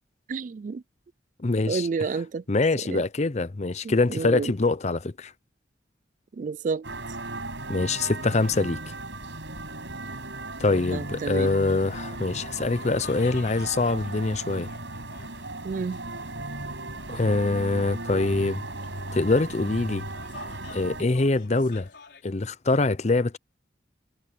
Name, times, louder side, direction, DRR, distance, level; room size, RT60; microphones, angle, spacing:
voice 1, 0.3-0.8 1.7-2.4 2.9-3.0 3.8-4.5 6.4-6.9 10.9-11.5 15.6-16.0, right 4 dB, 45° right, 0.3 m, -30 dB
voice 2, 1.4-1.9 2.5-5.3 7.7-8.8 10.6-14.7 17.1-18.6 19.1-20.0 20.7-21.9 22.2-23.4, left 3 dB, 40° left, 0.7 m, -24 dB
sound 1, 6.8-21.0, right 2 dB, 85° right, 6.5 m, -36 dB
sound 2, 11.4-22.2, left 4 dB, 75° left, 4.9 m, -49 dB
head